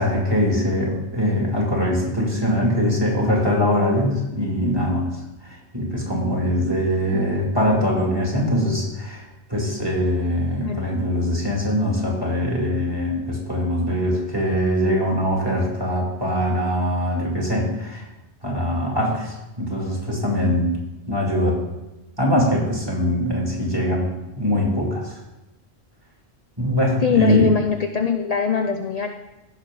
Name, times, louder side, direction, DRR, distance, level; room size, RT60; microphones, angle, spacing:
voice 1, 0.0-5.1 5.4-9.2 9.5-18.0 18.4-20.7 21.1-21.6 22.2-24.1 24.4-25.2 26.6-27.5, equal, 20° right, -2 dB, 2.5 m, -22 dB
voice 2, 27.0-29.1, left 6 dB, 45° left, 5 dB, 0.6 m, -22 dB
16.5 x 6.5 x 3.8 m, 0.98 s
omnidirectional pair, 1.2 m